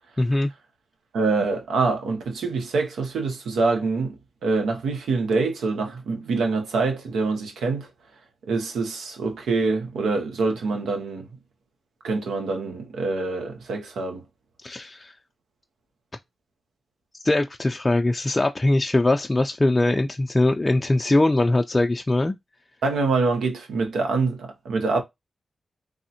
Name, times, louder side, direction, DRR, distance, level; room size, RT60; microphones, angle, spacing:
voice 1, 0.2-0.5 14.6-15.1 17.2-22.3, left 2 dB, 30° left, 0.4 m, -21 dB
voice 2, 1.1-7.9 8.5-11.3 12.0-14.2 22.8-25.0, right 3 dB, 90° right, 0.7 m, -25 dB
3.5 x 2.1 x 2.8 m
supercardioid pair, 40°, 0 cm